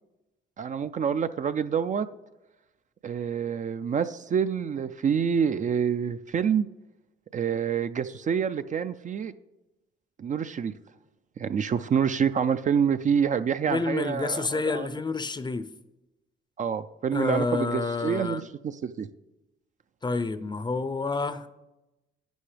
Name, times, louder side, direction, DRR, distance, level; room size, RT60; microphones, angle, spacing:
voice 1, 0.6-2.1 3.0-6.7 7.3-9.3 10.2-10.7 11.4-14.9 16.6-19.1, right 7 dB, 40° right, 0.4 m, -27 dB
voice 2, 13.7-15.7 17.1-18.4 20.0-21.5, left 3 dB, 20° left, 0.6 m, -29 dB
11.5 x 9.1 x 3.3 m
cardioid pair, 90°, 20 cm